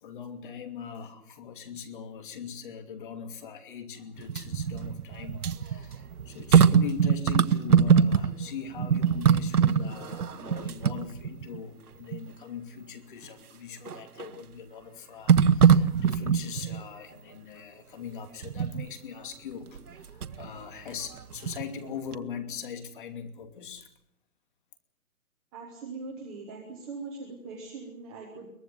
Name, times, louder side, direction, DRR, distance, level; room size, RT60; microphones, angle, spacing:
voice 1, 0.0-23.9, left 7 dB, 35° left, 7 dB, 2.8 m, -41 dB
sound 1, 4.2-8.5 8.8-11.6 12.1-12.2 13.9-14.3 15.3-16.8 18.4-18.8 19.8-20.5 20.9-21.9 22.1-22.2, right 7 dB, 75° right, 1.3 m, -23 dB
voice 2, 25.5-28.5, right 4 dB, 5° right, 0 dB, 0.8 m, -41 dB
22.5 x 19.5 x 7.8 m, 0.78 s
hypercardioid pair, 165°, 45 cm